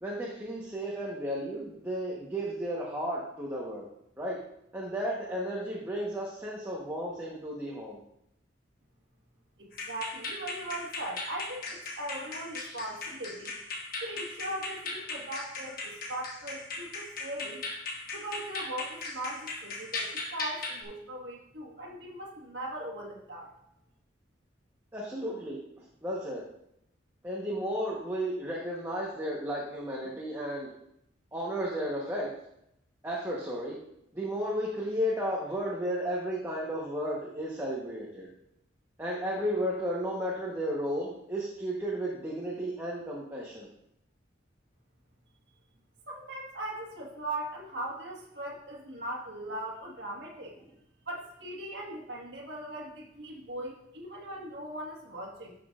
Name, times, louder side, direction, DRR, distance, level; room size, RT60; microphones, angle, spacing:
voice 1, 0.0-3.8 4.2-4.4 4.7-8.0 24.9-26.4 27.2-30.7 31.3-32.3 33.0-33.8 34.1-38.3 39.0-43.7 50.6-50.7, equal, 15° right, -5 dB, 1.2 m, -33 dB
voice 2, 9.6-13.5 14.0-17.6 18.1-23.5 46.1-50.5 51.1-55.5, right 1 dB, 60° right, -2 dB, 1.6 m, -39 dB
sound 1, 9.7-20.8, left 3 dB, 50° left, 1.2 m, -38 dB
11.5 x 6.1 x 2.5 m, 0.76 s
head